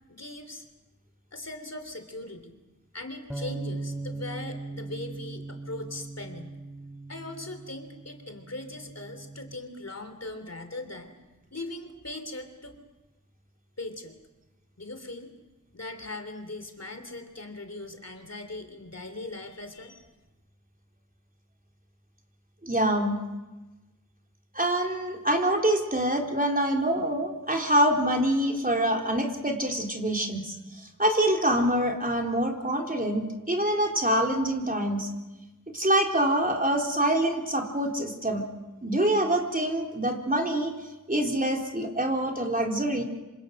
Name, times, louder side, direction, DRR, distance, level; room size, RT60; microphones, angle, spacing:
voice 1, 0.1-0.6 1.3-2.5 2.9-6.6 7.1-11.1 11.5-12.7 13.8-14.1 14.8-15.3 15.7-20.1, left 2 dB, 55° left, 7 dB, 3.3 m, -40 dB
sound 1, 3.3-9.5, right 3 dB, ahead, 2.5 m, -39 dB
voice 2, 22.6-23.2 24.5-35.1 35.7-38.4 38.8-40.7 41.1-43.0, right 1 dB, 25° right, 1 dB, 3.7 m, -25 dB
27.0 x 26.0 x 6.5 m, 1.1 s
wide cardioid pair, 55°, 31 cm